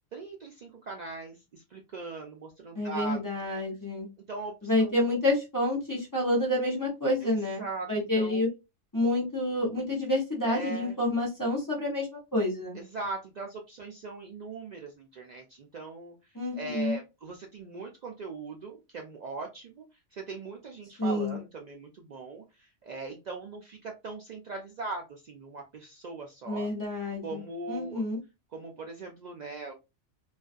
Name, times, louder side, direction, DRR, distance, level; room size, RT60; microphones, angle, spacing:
voice 1, 0.1-3.2 4.3-5.0 7.2-8.5 10.5-11.0 12.7-16.2 16.6-19.9 20.1-26.7 27.2-28.0 28.5-29.7, right 3 dB, 80° right, 1 dB, 0.3 m, -40 dB
voice 2, 2.7-4.1 4.6-7.6 7.9-8.5 8.9-12.8 16.3-17.0 21.0-21.4 26.5-27.4 27.7-28.2, left 1 dB, 20° left, -2 dB, 0.6 m, -28 dB
2.4 x 2.3 x 2.4 m, 0.25 s
omnidirectional pair, 1.3 m